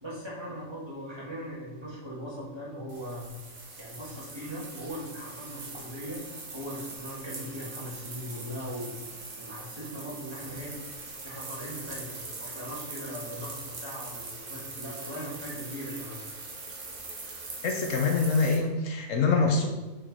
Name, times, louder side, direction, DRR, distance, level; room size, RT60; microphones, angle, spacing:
voice 1, 0.0-3.3 3.8-6.2 6.5-8.9 9.4-10.7 11.2-16.2, equal, 20° right, -7 dB, 2.0 m, -39 dB
sound 1, 2.9-18.6, right 3 dB, 45° right, 1.1 m, -42 dB
voice 2, 17.6-19.7, left 4 dB, 70° left, 4 dB, 1.1 m, -25 dB
5.7 x 5.5 x 4.1 m, 1.1 s
omnidirectional pair, 1.4 m